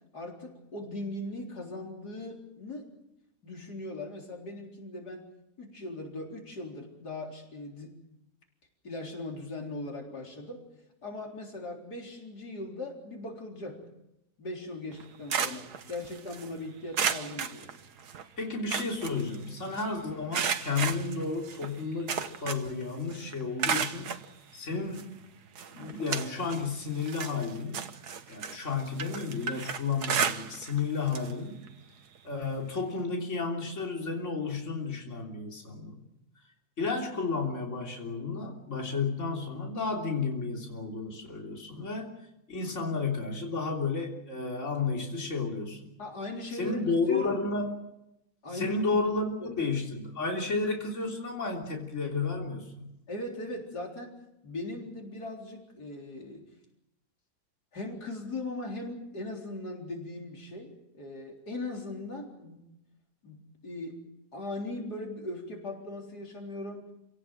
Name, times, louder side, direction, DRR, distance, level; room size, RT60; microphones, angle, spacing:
voice 1, 0.1-2.9 3.4-5.3 5.6-7.9 8.8-10.6 11.0-13.8 14.4-17.7 46.0-46.8 47.1-47.4 48.4-48.8 49.4-49.6 53.1-54.2 54.4-56.4 57.7-62.6 63.2-64.0 64.3-66.9, left 2 dB, 90° left, 0 dB, 4.5 m, -39 dB
sound 1, 14.9-16.5 16.9-18.2 18.5-19.8 20.3-22.8 23.1-24.2 24.9-25.0 25.5-26.7 27.0-30.8 31.1-31.3 31.7-31.8 33.0-33.1, right 7 dB, 85° right, 1.7 m, -33 dB
voice 2, 18.4-24.1 24.5-25.1 25.7-27.9 28.3-31.6 32.2-36.0 36.8-42.1 42.5-45.9 46.5-47.7 48.5-52.9, left 4 dB, 50° left, 0 dB, 3.7 m, -32 dB
28.5 x 17.5 x 7.6 m, 0.86 s
omnidirectional pair, 1.7 m